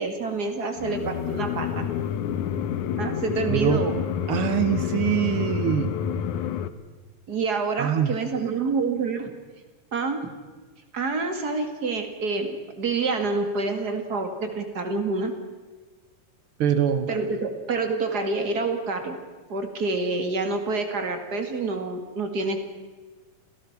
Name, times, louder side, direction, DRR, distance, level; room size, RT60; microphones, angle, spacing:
voice 1, 0.0-1.9 3.0-4.0 7.3-9.3 9.9-10.2 10.9-15.3 17.1-19.2 19.5-22.6, right 3 dB, 30° right, 6 dB, 2.4 m, -27 dB
sound 1, 0.8-6.7, left 9 dB, 70° left, 2.2 m, -28 dB
voice 2, 3.5-3.8 4.3-5.9 7.8-8.1 16.6-17.1, right 9 dB, 80° right, 10 dB, 1.2 m, -23 dB
27.0 x 17.5 x 5.9 m, 1.4 s
omnidirectional pair, 3.9 m